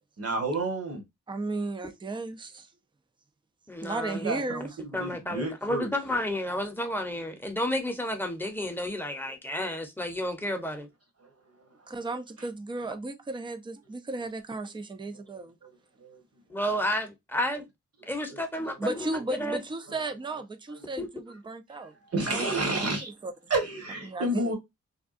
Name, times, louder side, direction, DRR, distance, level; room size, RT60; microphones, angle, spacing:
voice 1, 0.2-1.0 4.2-5.9 11.6-11.7 15.3-15.4 16.0-16.2 18.3-18.4 18.7-18.8 22.1-23.1 23.5-24.6, right 2 dB, 55° right, 1.3 m, -30 dB
voice 2, 1.3-2.7 3.8-4.8 11.9-15.6 18.8-21.9 22.2-22.5 22.8-22.9 23.2-23.3 24.0-24.5, right 2 dB, 15° right, 0.5 m, -35 dB
voice 3, 3.7-4.2 4.9-10.9 16.5-17.6 18.1-19.6 21.0-21.1, left 1 dB, 5° left, 0.8 m, -31 dB
3.5 x 2.2 x 2.4 m
cardioid pair, 85°, 30 cm